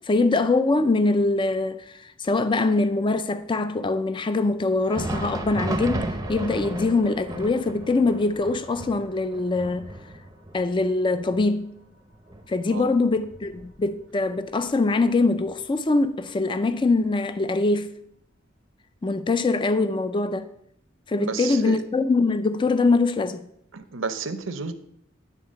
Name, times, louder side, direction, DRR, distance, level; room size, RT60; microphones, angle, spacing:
voice 1, 0.1-9.9 10.5-11.7 12.5-17.9 19.0-20.5 21.1-23.5, left 3 dB, 25° left, 0.4 m, -23 dB
Thunder, 4.7-14.2 14.5-14.7 15.4-15.5 16.5-16.6, right 2 dB, 20° right, 0.6 m, -35 dB
Musical instrument, 6.3-15.8, left 7 dB, 60° left, 2.9 m, -48 dB
voice 2, 21.2-21.8 23.7-24.7, right 4 dB, 75° right, 0.7 m, -31 dB
10.5 x 3.9 x 6.4 m
head